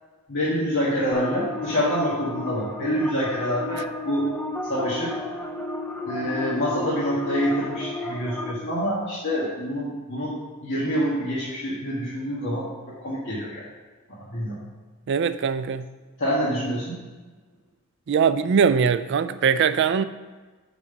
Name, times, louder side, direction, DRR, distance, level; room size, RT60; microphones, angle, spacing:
voice 1, 0.3-4.3 4.6-5.1 6.0-13.6 14.1-14.6 16.2-17.0, equal, 55° left, -8 dB, 1.6 m, -26 dB
sound 1, 1.1-8.5, left 2 dB, 5° left, 0.6 m, -33 dB
voice 2, 15.1-15.9 18.1-20.0, right 6 dB, 55° right, 13 dB, 0.4 m, -21 dB
5.8 x 5.3 x 6.8 m, 1.3 s
head